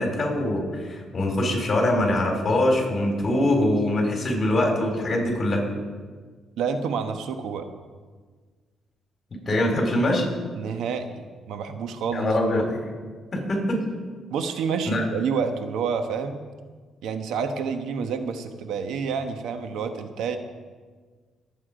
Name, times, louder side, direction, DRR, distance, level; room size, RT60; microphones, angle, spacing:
voice 1, 0.0-5.6 9.5-10.2 12.1-12.8 13.3-13.8 14.8-15.0, left 1 dB, 35° left, 1 dB, 4.3 m, -23 dB
voice 2, 6.6-7.7 10.5-12.3 14.3-16.4 17.0-20.4, right 6 dB, 80° right, 8 dB, 1.1 m, -28 dB
21.0 x 8.5 x 5.0 m, 1.5 s
cardioid pair, 90°, 0 cm